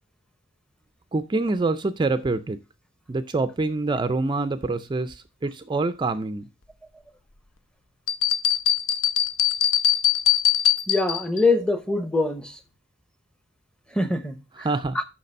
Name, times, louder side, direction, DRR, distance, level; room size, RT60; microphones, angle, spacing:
voice 1, 1.1-2.6 3.1-6.5 14.6-15.0, right 3 dB, 20° right, 0.4 m, -26 dB
sound 1, 8.1-11.4, left 9 dB, 80° left, 0.7 m, -22 dB
voice 2, 10.9-12.6 13.9-14.7 14.9-15.0, left 2 dB, 5° left, 0.7 m, -24 dB
6.7 x 5.9 x 5.2 m
head